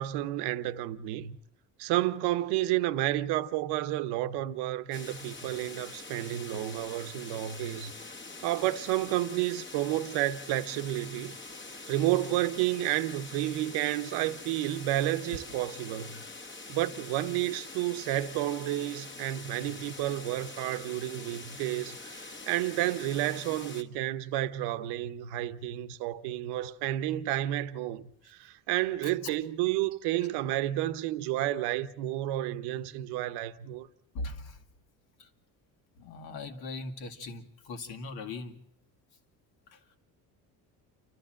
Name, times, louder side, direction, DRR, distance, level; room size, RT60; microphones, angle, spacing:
voice 1, 0.0-1.4 1.8-7.9 8.4-11.4 11.9-16.2 16.7-33.9, right 14 dB, 85° right, 1.0 m, -31 dB
sound 1, 4.9-23.8, left 3 dB, 30° left, 1.7 m, -45 dB
voice 2, 34.1-34.6 35.2-35.3 36.0-38.6 39.7-39.8, left 3 dB, 75° left, 2.2 m, -39 dB
29.0 x 12.5 x 7.6 m
cardioid pair, 120°, 38 cm